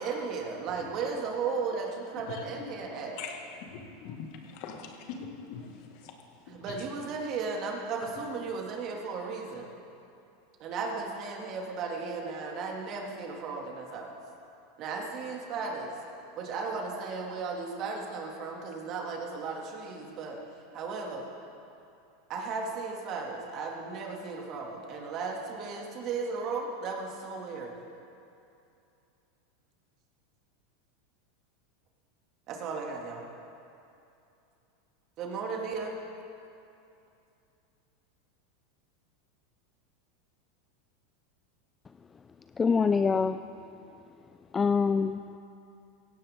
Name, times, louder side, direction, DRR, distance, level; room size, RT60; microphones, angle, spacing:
voice 1, 0.0-3.2 6.5-9.7 10.6-14.2 14.8-16.0 16.3-20.4 20.7-21.3 22.3-27.7 32.5-33.3 35.2-36.0, right 4 dB, 45° right, 0 dB, 2.5 m, -35 dB
voice 2, 2.3-2.8 3.2-6.9 8.1-8.2, left 6 dB, 60° left, 3 dB, 2.1 m, -43 dB
voice 3, 42.6-43.4 44.5-45.4, left 5 dB, 20° left, 10 dB, 0.4 m, -25 dB
16.5 x 16.5 x 3.8 m, 2.7 s
hypercardioid pair, 95°, 0 cm